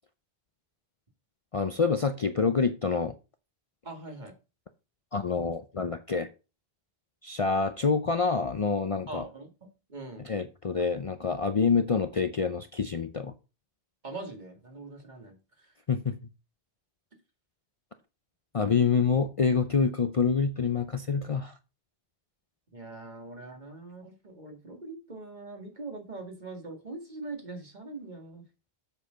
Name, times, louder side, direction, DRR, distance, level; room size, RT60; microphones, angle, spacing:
voice 1, 1.5-3.1 5.1-6.3 7.2-9.2 10.2-13.3 15.9-16.1 18.5-21.5, left 5 dB, 40° left, 0.6 m, -27 dB
voice 2, 3.8-4.3 9.1-9.5 9.9-10.3 14.0-15.7 22.7-28.4, right 3 dB, 45° right, 2.3 m, -42 dB
7.8 x 6.5 x 5.1 m
omnidirectional pair, 1.0 m